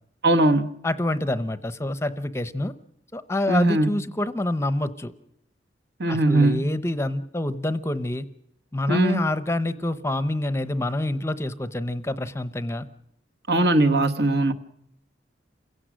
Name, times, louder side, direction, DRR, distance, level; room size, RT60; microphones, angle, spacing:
voice 1, 0.2-0.8 3.5-4.0 6.0-6.7 8.9-9.2 13.5-14.5, right 2 dB, 65° right, 1.3 m, -20 dB
voice 2, 0.8-2.7 3.1-5.1 6.1-8.2 8.7-12.9, left 1 dB, 15° left, 0.7 m, -27 dB
28.5 x 16.5 x 6.3 m
head